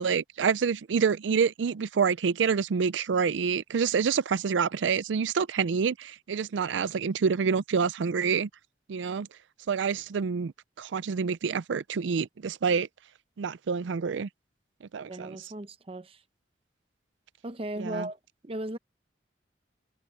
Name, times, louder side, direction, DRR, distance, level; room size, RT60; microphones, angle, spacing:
voice 1, 0.0-8.5 8.9-9.3 9.7-10.5 10.8-12.9 13.4-14.3 14.9-15.4 17.8-18.1, right 6 dB, 90° right, 0.4 m, -27 dB
voice 2, 15.1-16.2 17.4-18.8, right 1 dB, 30° right, 0.8 m, -37 dB
head